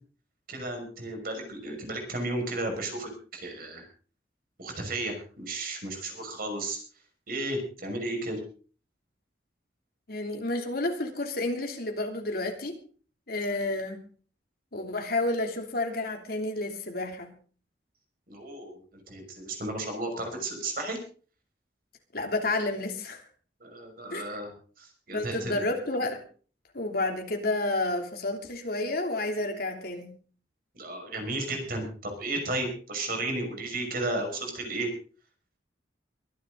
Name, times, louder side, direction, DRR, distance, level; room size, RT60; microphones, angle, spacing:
voice 1, 0.5-3.9 4.6-6.8 7.3-8.4 13.5-13.6 18.3-21.0 23.6-25.7 30.7-34.9, right 2 dB, 55° right, 3 dB, 5.9 m, -34 dB
voice 2, 10.1-12.8 13.3-14.0 14.7-17.3 22.1-23.2 24.1-24.3 25.1-26.2 26.7-30.1, left 2 dB, 55° left, 3 dB, 3.1 m, -30 dB
23.5 x 11.0 x 4.0 m, 0.41 s
head